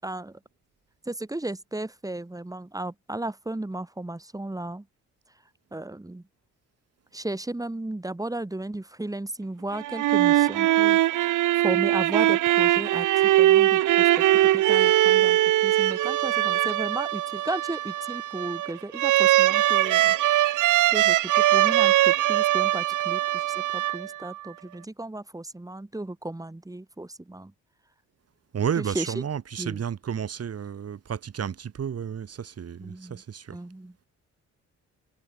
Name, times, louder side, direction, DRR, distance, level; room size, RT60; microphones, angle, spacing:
voice 1, 0.0-0.4 1.1-4.9 5.7-6.2 7.1-11.0 11.2-14.2 14.5-20.2 20.9-27.5 28.8-29.1 29.6-29.8 32.8-33.2 33.5-34.0, right 2 dB, 10° right, 7.2 m, -35 dB
sound 1, 9.7-24.4, right 14 dB, 80° right, 2.0 m, -21 dB
voice 2, 28.5-33.6, right 8 dB, 55° right, 6.9 m, -31 dB
cardioid pair, 90°, 30 cm